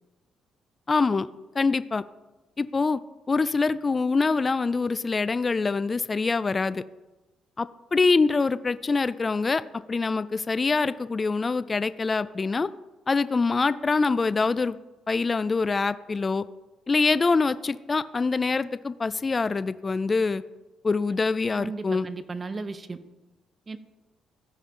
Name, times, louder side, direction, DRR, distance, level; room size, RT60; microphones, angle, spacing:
voice 1, 0.9-1.3 1.6-2.0 2.6-3.0 3.3-6.8 7.6-12.7 13.1-14.8 15.1-16.4 16.9-20.4 20.8-22.1, left 4 dB, 30° left, 15 dB, 0.3 m, -24 dB
voice 2, 21.6-23.0 23.7-23.8, right 3 dB, 30° right, 12 dB, 0.7 m, -35 dB
15.5 x 5.3 x 3.7 m, 1.1 s
cardioid pair, 90°, 0 cm